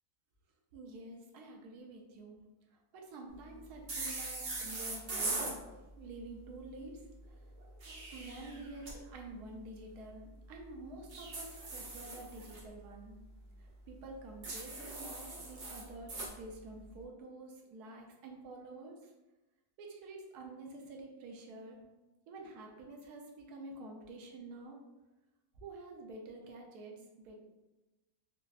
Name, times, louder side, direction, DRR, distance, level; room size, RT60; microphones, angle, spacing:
voice 1, 0.7-2.4 2.7-5.4 5.8-7.4 7.9-13.2 13.6-19.1 19.8-21.8 22.3-24.8 25.6-27.4, right 2 dB, 90° right, 1 dB, 1.2 m, -49 dB
sound 1, 3.9-5.6 7.6-8.9 11.1-12.6 14.4-16.3, right 2 dB, 55° right, 0.9 m, -40 dB
4.1 x 2.2 x 2.3 m, 1.0 s
omnidirectional pair, 1.6 m